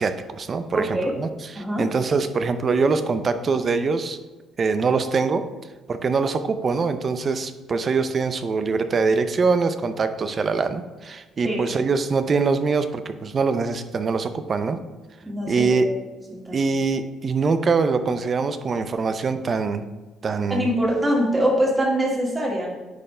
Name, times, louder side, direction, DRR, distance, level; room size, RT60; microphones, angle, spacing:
voice 1, 0.0-4.2 4.6-5.4 5.9-14.8 15.5-15.9 16.5-19.8 20.2-20.7, right 4 dB, 45° right, 10 dB, 0.6 m, -23 dB
voice 2, 0.7-1.1 1.5-1.9 11.4-11.6 15.2-15.9 16.3-16.6 20.5-22.7, equal, 20° right, -3 dB, 2.3 m, -23 dB
9.5 x 4.3 x 3.3 m, 1.2 s
supercardioid pair, 70°, 0 cm